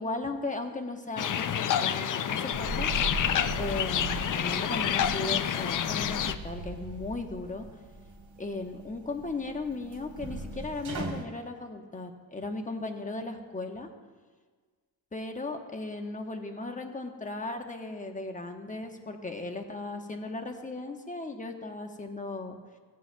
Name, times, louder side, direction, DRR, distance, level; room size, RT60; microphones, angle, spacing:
voice 1, 0.0-2.9 3.6-6.2 6.4-7.7 8.4-13.9 15.1-22.6, left 2 dB, 15° left, 5 dB, 1.0 m, -36 dB
sound 1, 1.2-6.4, left 9 dB, 45° left, 0.5 m, -28 dB
sound 2, 2.5-11.2, right 2 dB, 60° right, 1.6 m, -39 dB
15.0 x 8.4 x 2.3 m, 1.5 s
cardioid pair, 75°, 45 cm